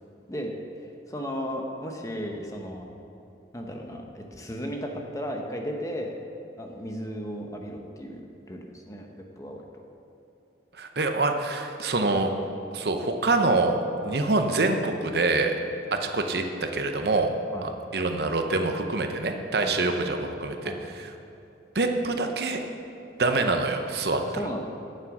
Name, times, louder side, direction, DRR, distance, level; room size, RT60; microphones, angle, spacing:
voice 1, 1.1-2.9 3.5-6.2 6.6-8.2 8.5-9.6 17.5-17.7 19.6-19.9 20.6-20.8 24.1-24.6, equal, 15° left, 2 dB, 0.9 m, -35 dB
voice 2, 10.8-12.3 12.7-13.8 14.0-15.5 15.9-17.3 17.6-20.7 21.0-21.1 21.7-22.6 23.2-24.2, right 3 dB, 60° right, 5 dB, 0.7 m, -25 dB
8.8 x 7.7 x 6.1 m, 2.9 s
head